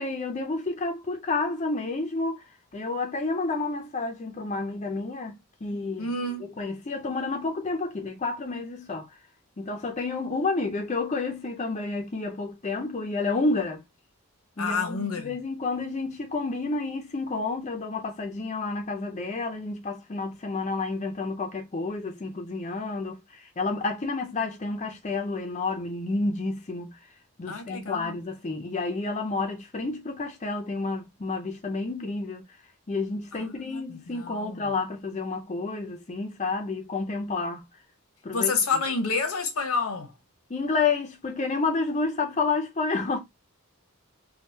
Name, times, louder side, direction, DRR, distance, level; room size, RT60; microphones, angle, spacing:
voice 1, 0.0-2.4 2.7-6.1 6.6-9.1 9.6-13.8 14.6-27.0 27.4-32.4 32.9-37.6 38.2-38.5 40.5-43.2, left 3 dB, 30° left, 0.5 m, -30 dB
voice 2, 6.0-6.5 14.6-15.4 27.5-28.1 33.5-34.7 38.3-40.1, left 4 dB, 80° left, 0.9 m, -29 dB
3.5 x 2.3 x 2.7 m
head